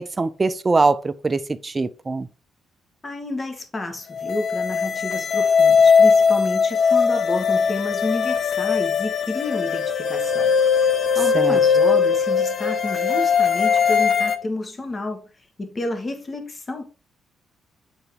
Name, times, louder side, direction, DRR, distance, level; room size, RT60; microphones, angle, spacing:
voice 1, 0.0-2.3 11.3-11.6, right 3 dB, 25° right, 0.6 m, -22 dB
voice 2, 3.0-10.5 10.9-16.9, left 2 dB, 30° left, 1.6 m, -30 dB
sound 1, 4.2-14.4, left 6 dB, 45° left, 0.8 m, -19 dB
8.1 x 4.0 x 3.6 m
cardioid pair, 90°, 0 cm